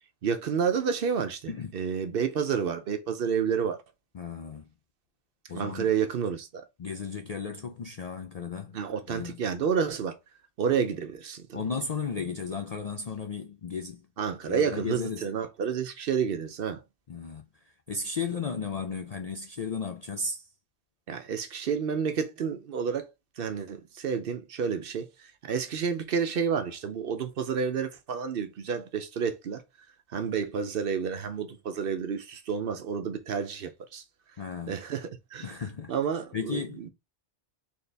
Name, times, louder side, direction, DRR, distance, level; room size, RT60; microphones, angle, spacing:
voice 1, 0.2-3.8 5.5-6.7 8.7-10.2 10.6-11.6 14.2-16.8 21.1-23.1 23.4-29.6 30.1-34.0 34.7-35.6 35.9-36.9, right 7 dB, 60° right, 0.7 m, -30 dB
voice 2, 4.1-4.7 5.5-5.9 6.8-8.8 9.1-9.4 11.5-14.1 14.5-15.3 17.1-20.5 34.4-34.8 35.4-35.9 36.3-36.8, left 5 dB, 55° left, 0.4 m, -35 dB
4.2 x 2.8 x 3.3 m
omnidirectional pair, 1.2 m